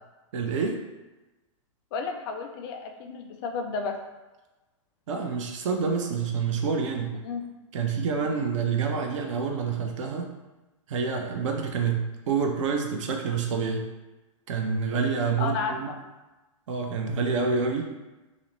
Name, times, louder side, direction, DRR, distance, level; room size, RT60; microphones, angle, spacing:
voice 1, 0.3-0.8 5.1-7.2 7.7-10.3 10.9-13.9 14.5-15.9 16.7-17.9, right 5 dB, 65° right, 2 dB, 0.5 m, -27 dB
voice 2, 1.9-4.0 7.1-7.4 8.2-8.4 15.4-16.0, left 5 dB, 50° left, 4 dB, 0.4 m, -32 dB
2.4 x 2.0 x 2.9 m, 1.1 s
hypercardioid pair, 115°, 17 cm